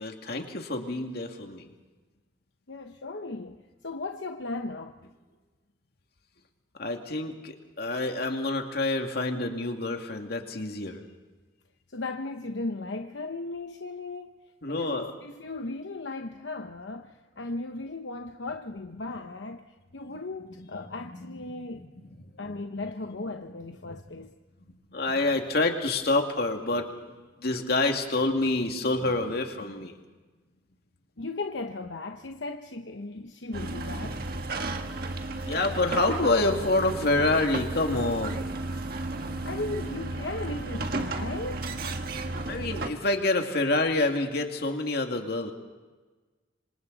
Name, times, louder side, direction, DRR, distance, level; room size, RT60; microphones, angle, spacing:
voice 1, 0.0-1.7 6.8-11.0 14.6-15.1 20.1-20.2 20.5-21.5 24.9-29.9 35.5-38.5 42.5-45.5, left 2 dB, 60° left, 2.4 m, -27 dB
voice 2, 2.7-5.0 11.9-14.4 14.7-21.9 22.4-24.4 31.2-34.2 39.4-41.7, left 2 dB, 80° left, 1.0 m, -36 dB
sound 1, 33.5-42.9, right 2 dB, 55° right, 1.6 m, -33 dB
26.5 x 26.5 x 4.1 m
head